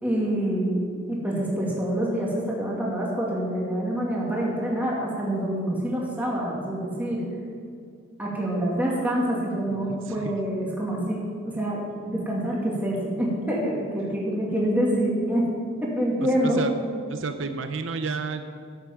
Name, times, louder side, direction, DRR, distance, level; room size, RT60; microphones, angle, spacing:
voice 1, 0.0-7.3 8.2-15.6 15.8-16.6, right 1 dB, 10° right, -4 dB, 2.3 m, -26 dB
voice 2, 9.7-10.4 16.4-16.7 17.1-18.4, right 4 dB, 80° right, 8 dB, 0.6 m, -31 dB
12.5 x 8.0 x 7.3 m, 2.2 s
head